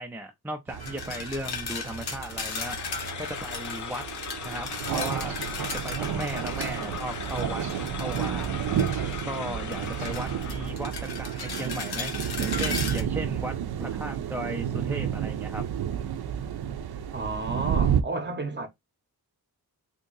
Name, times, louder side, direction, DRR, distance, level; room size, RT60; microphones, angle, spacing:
voice 1, 0.0-4.0 4.4-5.3 5.8-7.6 8.0-8.9 9.2-15.6, right 1 dB, 5° right, 0.4 m, -36 dB
sound 1, 0.7-18.0, right 9 dB, 70° right, 0.6 m, -31 dB
sound 2, 0.8-9.4 9.7-13.0, left 5 dB, 70° left, 0.9 m, -37 dB
sound 3, 2.3-10.8, left 7 dB, 50° left, 0.5 m, -39 dB
voice 2, 17.1-18.7, right 3 dB, 25° right, 0.7 m, -31 dB
2.9 x 2.7 x 3.7 m
wide cardioid pair, 175°, 40 cm